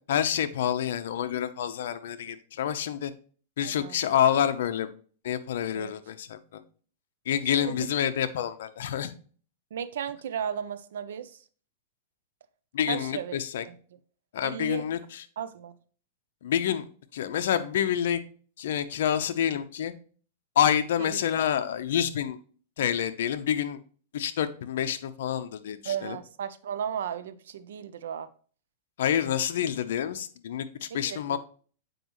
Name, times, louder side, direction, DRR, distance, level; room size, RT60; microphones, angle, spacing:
voice 1, 0.1-3.1 3.6-4.9 5.2-6.6 7.3-9.1 12.7-13.6 14.3-15.2 16.4-18.2 18.6-19.9 20.6-22.4 22.8-23.8 24.1-26.2 29.0-31.4, left 9 dB, 70° left, 9 dB, 0.8 m, -28 dB
voice 2, 3.6-4.0 5.7-5.9 7.5-7.9 9.7-11.4 12.9-13.4 13.6-13.8 14.4-14.9 15.4-15.8 21.0-21.2 25.8-28.3 30.9-31.4, right 8 dB, 80° right, 12 dB, 0.6 m, -35 dB
7.8 x 5.0 x 3.1 m, 0.42 s
supercardioid pair, 155°, 0 cm